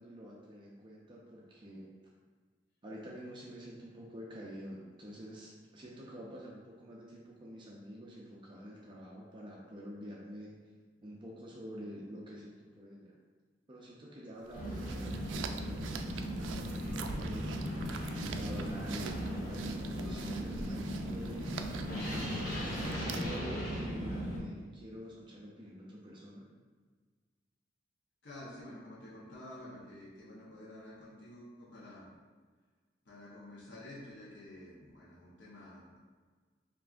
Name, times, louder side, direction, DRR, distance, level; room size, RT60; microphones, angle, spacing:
voice 1, 0.0-1.9 2.8-10.6 11.0-13.2 13.7-26.5, equal, 25° right, -4 dB, 0.5 m, -48 dB
sound 1, 14.4-23.5, right 5 dB, 90° right, 0.3 m, -45 dB
sound 2, 14.5-24.4, equal, 50° left, 1.4 m, -37 dB
voice 2, 28.2-32.1 33.1-36.0, left 1 dB, 75° left, -7 dB, 0.8 m, -50 dB
5.7 x 2.5 x 2.4 m, 1.5 s
head